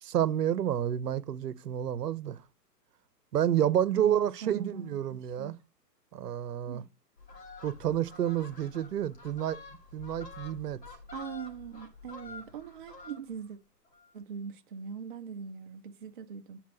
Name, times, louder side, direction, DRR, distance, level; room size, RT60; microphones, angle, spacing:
voice 1, 0.0-2.4 3.3-5.5 6.1-6.8 7.6-9.6 9.9-10.8, right 10 dB, 70° right, 0.7 m, -29 dB
voice 2, 3.9-5.5 6.7-6.9 11.1-13.6 14.1-16.6, right 6 dB, 35° right, 0.4 m, -41 dB
Fowl, 7.2-13.5 13.8-14.1, left 3 dB, 90° left, 1.9 m, -48 dB
9.4 x 4.2 x 2.8 m
hypercardioid pair, 125°, 48 cm